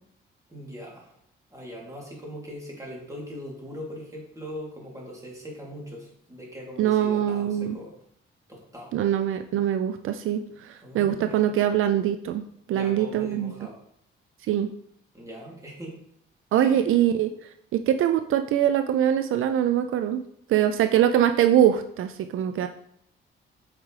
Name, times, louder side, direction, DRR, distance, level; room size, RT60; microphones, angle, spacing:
voice 1, 0.5-1.1 1.5-7.9 8.5-8.9 10.8-11.5 12.7-13.8 15.1-16.0 16.5-16.8, equal, 15° right, -3 dB, 2.7 m, -40 dB
voice 2, 6.8-7.8 8.9-13.5 14.5-14.7 16.5-20.2 20.5-22.7, right 10 dB, 75° right, 8 dB, 0.5 m, -23 dB
8.1 x 5.1 x 3.2 m, 0.69 s
cardioid pair, 100°, 21 cm